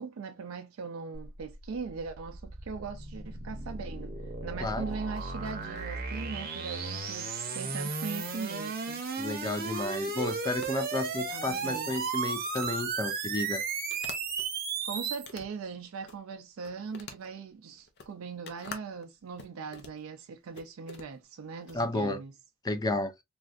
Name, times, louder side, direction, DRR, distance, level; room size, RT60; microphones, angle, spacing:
voice 1, 0.0-4.1 4.4-9.0 11.3-12.0 14.8-22.3, right 5 dB, 75° right, 0.4 m, -40 dB
sound 1, 1.1-15.3, right 4 dB, 45° right, 0.7 m, -35 dB
sound 2, 4.9-14.5 15.0-16.4 16.6-21.8, left 4 dB, 55° left, 0.7 m, -50 dB
voice 2, 9.2-13.6 21.7-22.2 22.6-23.1, left 2 dB, 20° left, 0.4 m, -32 dB
3.2 x 2.5 x 2.4 m
head